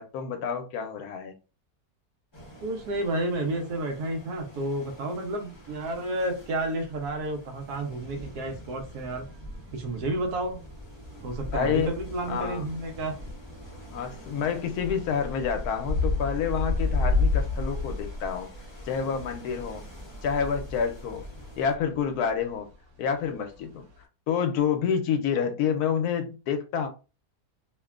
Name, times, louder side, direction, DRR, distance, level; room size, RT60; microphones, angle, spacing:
voice 1, 0.0-1.3 11.5-11.9 12.3-12.6 13.9-18.5 18.9-19.8 20.2-21.3 21.6-22.7 23.0-23.9 24.3-26.9, left 7 dB, 80° left, 6 dB, 1.1 m, -28 dB
sound 1, 2.3-21.8, equal, 25° left, 0.6 m, -46 dB
voice 2, 2.6-9.2 9.7-10.6 11.2-13.2, right 1 dB, 80° right, 4 dB, 1.2 m, -31 dB
sound 2, 7.4-7.5 7.8-8.1 9.1-9.6 10.1-19.3 19.5-24.0, left 3 dB, 55° right, 1.2 m, -31 dB
3.0 x 2.2 x 2.3 m, 0.31 s
omnidirectional pair, 1.6 m